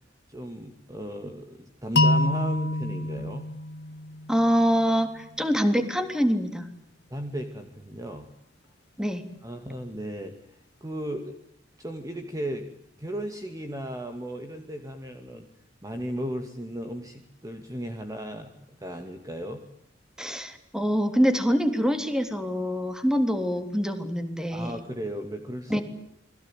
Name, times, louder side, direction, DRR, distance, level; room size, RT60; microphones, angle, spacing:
voice 1, 0.3-3.5 7.1-8.3 9.4-10.3 10.8-11.4 11.8-12.7 13.0-15.5 15.8-19.6 24.5-25.8, equal, 20° right, 5 dB, 2.4 m, -35 dB
sound 1, 2.0-4.9, left 1 dB, 65° left, 1.4 m, -26 dB
voice 2, 4.3-6.7 9.0-9.3 20.2-24.8 25.7-25.8, equal, 5° right, 7 dB, 3.4 m, -25 dB
29.0 x 22.0 x 9.2 m, 0.73 s
head